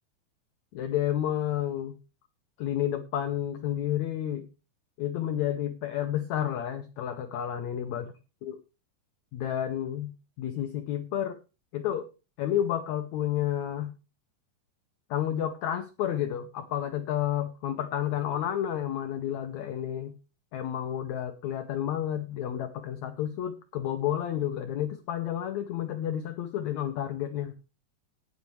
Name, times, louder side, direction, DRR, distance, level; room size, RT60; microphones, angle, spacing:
voice 1, 0.7-2.0 2.6-4.5 5.0-8.0 8.4-8.5 9.3-11.4 11.7-12.1 12.4-13.9 15.1-20.1 20.5-27.5, left 11 dB, 85° left, 8 dB, 1.6 m, -30 dB
17.5 x 8.3 x 3.2 m, 0.30 s
omnidirectional pair, 4.4 m